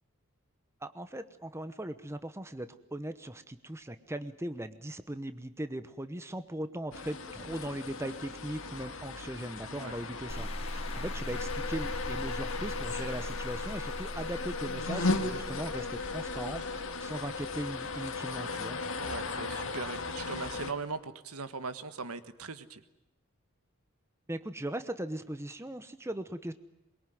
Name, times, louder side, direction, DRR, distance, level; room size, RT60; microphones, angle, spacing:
voice 1, 0.8-18.8 24.3-26.5, right 1 dB, 10° right, 11 dB, 0.9 m, -39 dB
sound 1, 6.9-20.7, left 3 dB, 60° left, 2.1 m, -36 dB
sound 2, 10.3-17.4, left 1 dB, 25° left, 1.4 m, -41 dB
voice 2, 19.0-22.8, right 4 dB, 85° right, 11 dB, 1.6 m, -40 dB
23.0 x 22.5 x 9.3 m, 0.94 s
head